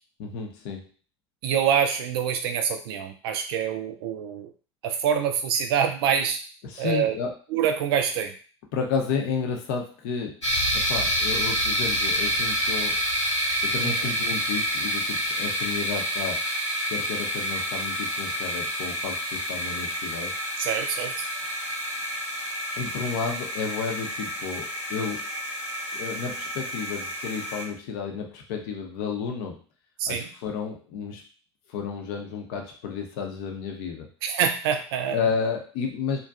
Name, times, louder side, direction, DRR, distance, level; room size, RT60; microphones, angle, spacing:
voice 1, 0.2-0.9 6.6-7.3 8.7-10.4 10.7-13.0 13.6-16.4 16.9-20.3 22.8-25.3 25.9-29.6 30.1-31.2 31.7-34.1 35.1-36.2, left 6 dB, 55° left, 2 dB, 0.7 m, -31 dB
voice 2, 1.4-4.5 4.8-6.4 6.8-7.1 7.5-8.3 13.8-14.1 20.6-21.1 30.0-30.3 34.2-35.3, right 8 dB, 55° right, 6 dB, 0.4 m, -25 dB
sound 1, 10.4-27.6, equal, 85° left, 1.0 m, -28 dB
2.6 x 2.2 x 2.3 m, 0.38 s
figure-of-eight pair, 80°, 15 cm